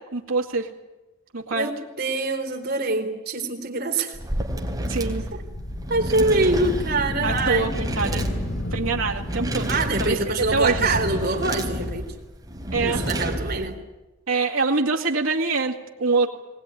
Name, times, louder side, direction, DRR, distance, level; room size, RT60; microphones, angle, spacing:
voice 1, 0.1-0.7 1.3-1.7 4.9-5.2 6.1-6.2 7.2-8.2 8.7-10.2 10.5-10.9 12.7-13.0 14.3-16.3, right 3 dB, 80° right, 0 dB, 2.4 m, -24 dB
voice 2, 1.5-4.2 5.3-5.4 5.9-7.7 9.7-12.1 12.8-13.8, right 3 dB, 50° right, 2 dB, 4.0 m, -24 dB
sound 1, 4.1-13.7, right 1 dB, 15° right, 3.6 m, -30 dB
sound 2, 5.0-11.3, left 1 dB, 40° left, 1.2 m, -32 dB
20.5 x 20.0 x 10.0 m, 1.1 s
head